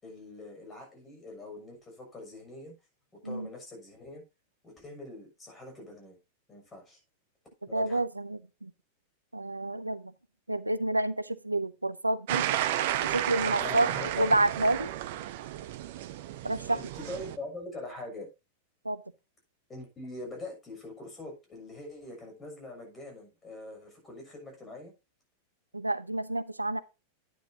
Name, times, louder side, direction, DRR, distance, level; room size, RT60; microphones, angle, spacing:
voice 1, 0.0-2.7 3.2-4.2 4.6-6.2 6.5-7.0 7.7-8.0 13.6-14.4 16.7-18.3 19.7-24.9, left 2 dB, 20° left, 6.7 m, -43 dB
voice 2, 7.7-8.7 9.3-10.1 10.5-12.6 13.0-13.9 14.2-14.9 16.4-16.8 18.8-19.0 25.7-26.8, right 2 dB, 85° right, 0.5 m, -29 dB
sound 1, 12.3-17.4, right 12 dB, 50° right, 0.8 m, -32 dB
10.0 x 9.8 x 2.8 m
figure-of-eight pair, 90°, 0 cm